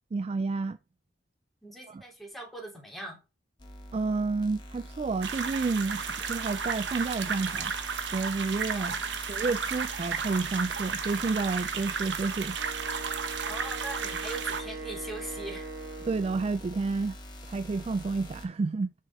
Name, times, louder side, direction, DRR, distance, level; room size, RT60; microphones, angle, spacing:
voice 1, 0.1-0.8 1.9-2.0 3.9-7.7 8.1-9.0 9.3-12.9 16.1-17.2 17.5-18.9, right 3 dB, 35° right, 0.3 m, -30 dB
voice 2, 1.6-3.2 8.7-9.2 13.4-15.7, right 1 dB, ahead, 3.0 m, -41 dB
sound 1, 3.6-18.5, equal, 25° left, 1.7 m, -45 dB
sound 2, 5.2-14.6, right 6 dB, 90° right, 1.1 m, -33 dB
Wind instrument woodwind instrument, 12.6-16.6, right 3 dB, 70° right, 2.0 m, -41 dB
7.3 x 5.2 x 3.5 m
head